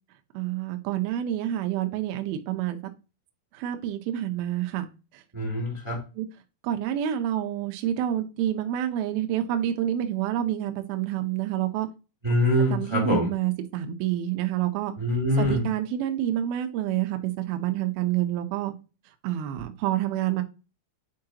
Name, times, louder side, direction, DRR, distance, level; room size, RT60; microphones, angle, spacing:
voice 1, 0.3-2.8 3.6-4.9 6.2-6.3 6.6-11.9 12.7-14.9 15.4-18.7 19.2-20.4, right 12 dB, 90° right, 6 dB, 2.1 m, -28 dB
voice 2, 5.3-6.0 12.2-13.3 15.0-15.7, equal, 15° right, -1 dB, 1.0 m, -24 dB
9.2 x 4.6 x 2.9 m, 0.30 s
omnidirectional pair, 5.5 m